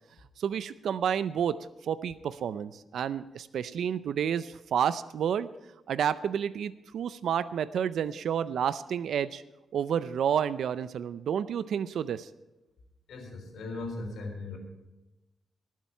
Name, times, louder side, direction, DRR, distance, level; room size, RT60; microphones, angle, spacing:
voice 1, 0.4-1.6 1.8-5.5 5.9-9.4 9.7-12.3, right 8 dB, 75° right, 14 dB, 0.4 m, -30 dB
voice 2, 13.1-14.6, left 2 dB, 85° left, 2 dB, 4.0 m, -38 dB
19.0 x 7.5 x 5.6 m, 1.0 s
wide cardioid pair, 145°, 0 cm